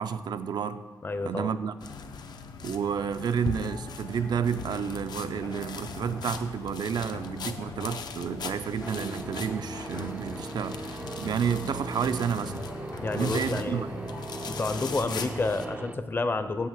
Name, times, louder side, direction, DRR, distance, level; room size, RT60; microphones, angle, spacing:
voice 1, 0.0-0.8 1.2-1.8 2.6-12.7 13.1-13.9, right 7 dB, 80° right, 0.5 m, -30 dB
voice 2, 1.0-1.5 13.0-13.8 14.4-16.7, left 3 dB, 30° left, 0.5 m, -30 dB
sound 1, 1.8-15.7, left 5 dB, 80° left, 0.6 m, -40 dB
sound 2, 3.9-13.8, left 3 dB, 55° left, 0.9 m, -45 dB
sound 3, 8.8-16.0, right 3 dB, 20° right, 0.3 m, -39 dB
8.2 x 5.7 x 7.3 m
wide cardioid pair, 150°, 7 cm